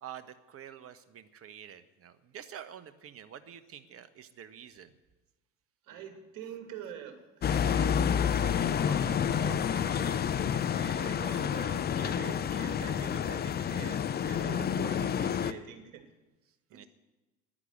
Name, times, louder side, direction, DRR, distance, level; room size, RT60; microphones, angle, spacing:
voice 1, 0.0-4.9 14.4-14.7 16.7-16.9, right 9 dB, 35° right, 12 dB, 1.2 m, -48 dB
voice 2, 5.9-16.0 16.7-16.9, right 8 dB, 50° right, 6 dB, 2.4 m, -45 dB
sound 1, 7.4-15.5, left 8 dB, 25° left, 0.6 m, -29 dB
11.5 x 10.0 x 9.3 m, 1.1 s
figure-of-eight pair, 65°, 39 cm